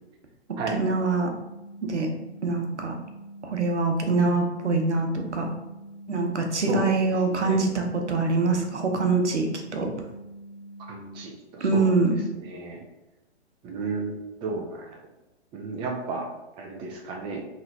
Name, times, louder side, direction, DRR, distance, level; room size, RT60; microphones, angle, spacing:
voice 1, 0.7-1.3 1.8-2.1 2.4-3.0 3.4-5.5 6.1-9.9 11.6-12.2, right 3 dB, 90° right, 3 dB, 0.8 m, -24 dB
sound 1, 1.2-11.2, right 1 dB, 10° left, 1.3 m, -45 dB
voice 2, 6.7-7.7 10.9-11.9 12.3-12.8 13.6-15.0 15.5-16.3 16.6-17.4, right 4 dB, 15° right, 1 dB, 0.5 m, -33 dB
3.9 x 3.1 x 2.7 m, 0.99 s
figure-of-eight pair, 120°, 34 cm